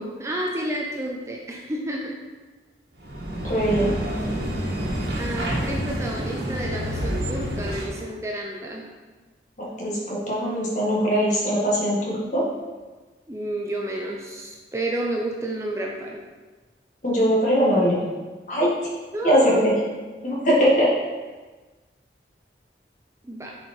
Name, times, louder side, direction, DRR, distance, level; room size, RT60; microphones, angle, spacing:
voice 1, 0.0-2.1 5.1-8.8 13.3-16.2 19.1-19.7 23.2-23.5, right 1 dB, 15° right, -1 dB, 0.6 m, -30 dB
sound 1, 3.0-8.0, equal, 65° right, 1.6 m, -28 dB
voice 2, 3.4-3.9 9.6-12.4 17.0-18.0 18.5-18.7 19.2-19.8 20.2-20.9, equal, 45° left, -5 dB, 1.9 m, -21 dB
6.8 x 5.0 x 4.4 m, 1.3 s
head